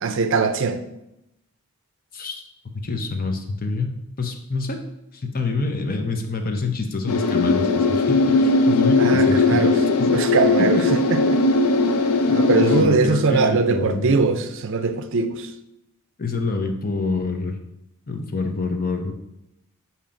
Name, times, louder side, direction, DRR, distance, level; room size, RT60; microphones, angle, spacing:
voice 1, 0.0-0.8 9.0-11.4 12.3-15.5, right 4 dB, 55° right, 0.5 m, -21 dB
voice 2, 2.1-2.4 2.8-4.8 5.1-9.7 10.0-10.1 10.6-10.7 12.6-14.4 16.2-17.6 18.1-19.1, left 3 dB, 40° left, 0.7 m, -26 dB
sound 1, 7.1-12.8, left 3 dB, 80° left, 0.5 m, -19 dB
7.1 x 2.9 x 5.1 m
head